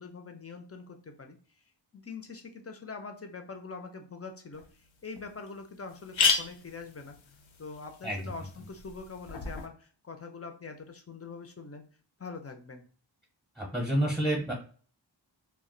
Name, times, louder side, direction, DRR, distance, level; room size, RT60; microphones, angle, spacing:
voice 1, 0.0-1.6 1.9-7.2 7.6-11.8 12.2-12.8, left 4 dB, 35° left, 5 dB, 0.5 m, -44 dB
sound 1, 4.6-4.7 5.2-5.3 5.5-5.6 5.9-9.7, left 5 dB, 80° left, 0.6 m, -33 dB
voice 2, 13.6-14.5, right 1 dB, ahead, -1 dB, 0.8 m, -28 dB
2.3 x 2.1 x 3.7 m, 0.41 s
wide cardioid pair, 60°, 45 cm